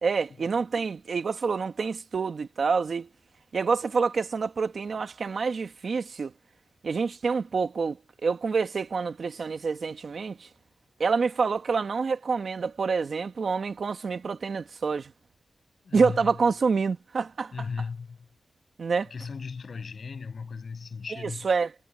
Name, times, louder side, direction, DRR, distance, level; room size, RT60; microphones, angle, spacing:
voice 1, 0.0-3.1 3.5-6.3 6.8-8.0 8.2-10.5 11.0-15.1 15.9-17.7 18.8-19.1 21.1-21.7, right 5 dB, 65° right, 1.7 m, -27 dB
voice 2, 15.8-16.2 17.5-18.2 19.1-21.5, left 5 dB, 65° left, 7.6 m, -36 dB
wide cardioid pair, 80°, 0 cm